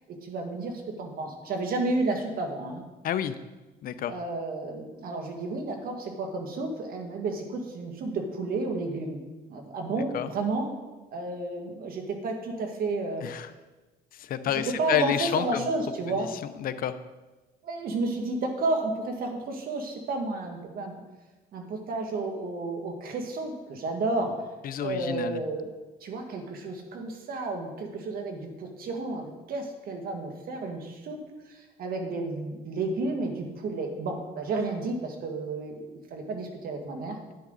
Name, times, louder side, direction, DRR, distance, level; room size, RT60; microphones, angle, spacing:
voice 1, 0.1-2.8 4.1-9.2 9.5-10.7 11.1-13.2 14.8-16.3 17.6-21.0 21.5-24.3 24.8-25.7 26.0-31.2 31.5-35.8 36.1-37.2, right 3 dB, 60° right, 3 dB, 1.9 m, -31 dB
voice 2, 3.8-4.2 10.1-10.3 13.2-13.5 14.1-15.7 16.6-17.0 24.6-25.4, left 10 dB, 60° left, 12 dB, 0.7 m, -29 dB
10.5 x 9.6 x 4.0 m, 1.2 s
cardioid pair, 110°, 17 cm